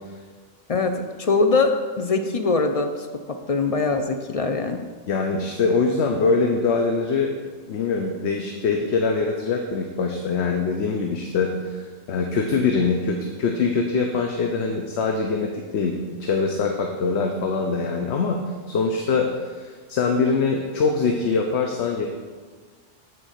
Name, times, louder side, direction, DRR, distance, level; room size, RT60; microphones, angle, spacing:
voice 1, 0.7-4.8, left 3 dB, 50° left, 5 dB, 0.4 m, -23 dB
voice 2, 5.1-7.3 7.7-18.4 18.7-19.3 19.6-22.1, left 4 dB, 70° left, 3 dB, 1.0 m, -23 dB
8.7 x 4.6 x 6.5 m, 1.5 s
omnidirectional pair, 1.2 m